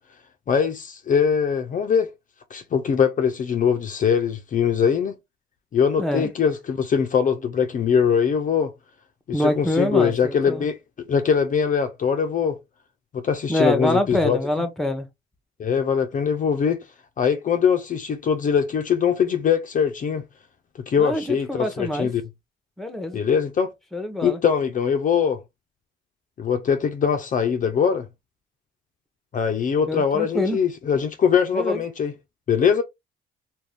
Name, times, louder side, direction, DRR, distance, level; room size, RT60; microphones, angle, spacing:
voice 1, 0.5-2.1 2.5-5.2 5.7-8.7 9.3-10.8 11.1-12.6 13.1-14.4 15.6-16.8 17.2-20.2 20.9-22.2 23.1-23.7 24.2-25.4 26.4-28.1 29.3-32.1 32.5-32.8, left 7 dB, 40° left, 0.4 m, -22 dB
voice 2, 6.0-6.3 9.3-10.6 13.5-15.1 21.0-22.1 22.8-23.2 23.9-24.4 29.9-30.6 31.5-31.8, left 1 dB, ahead, 0.7 m, -25 dB
2.5 x 2.2 x 3.2 m
cardioid pair, 90°, 20 cm